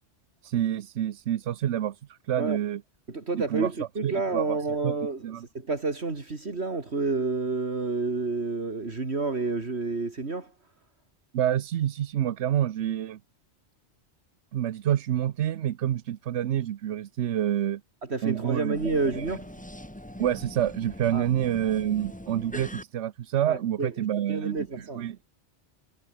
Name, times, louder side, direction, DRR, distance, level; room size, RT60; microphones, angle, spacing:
voice 1, 0.4-2.8 3.3-3.7 4.0-4.6 4.8-4.9 5.2-5.4 11.3-13.2 14.5-17.8 18.2-19.3 20.2-25.2, right 11 dB, 80° right, 1.0 m, -28 dB
voice 2, 3.1-5.3 5.5-10.5 18.1-19.5 21.1-21.2 23.4-23.9 24.3-25.1, right 3 dB, 65° right, 3.0 m, -29 dB
sound 1, 18.7-22.8, left 1 dB, 5° left, 1.8 m, -42 dB
omnidirectional pair, 1.2 m